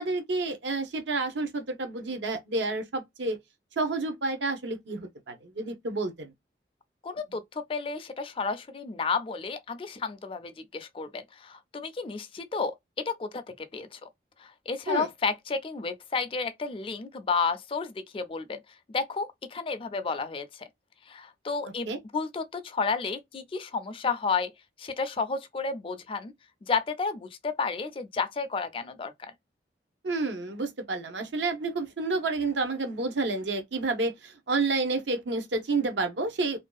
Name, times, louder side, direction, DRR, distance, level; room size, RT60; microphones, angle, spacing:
voice 1, 0.0-3.4 3.8-6.3 14.9-15.1 21.6-22.0 30.0-36.6, right 3 dB, 80° right, 0.7 m, -30 dB
voice 2, 7.0-12.7 13.1-14.0 14.4-18.6 18.9-20.7 21.1-24.5 24.8-26.3 26.6-29.3, left 4 dB, 30° left, 0.3 m, -32 dB
2.5 x 2.2 x 2.3 m
head